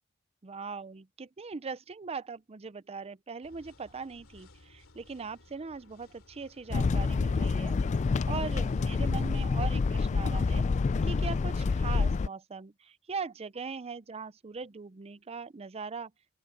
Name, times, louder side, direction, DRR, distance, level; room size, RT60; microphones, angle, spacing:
voice 1, 0.4-7.7 8.3-10.7 11.0-16.1, right 5 dB, 30° right, 0.5 m, -40 dB
sound 1, 3.4-11.7, left 2 dB, 80° left, 2.9 m, -58 dB
sound 2, 6.7-12.3, left 4 dB, 35° left, 0.3 m, -27 dB
open air
head